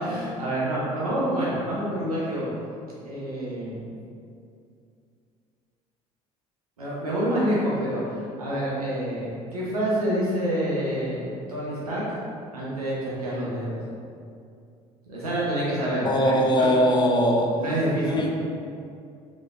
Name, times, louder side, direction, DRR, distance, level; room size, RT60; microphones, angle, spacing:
voice 1, 0.0-2.5 3.0-3.9 6.8-12.2 12.5-13.8 15.1-16.7 17.6-18.2, right 1 dB, 90° right, -6 dB, 0.9 m, -27 dB
voice 2, 16.0-17.6 18.0-18.3, equal, 25° left, 0 dB, 0.5 m, -21 dB
3.9 x 3.1 x 2.4 m, 2.4 s
hypercardioid pair, 60°, 19 cm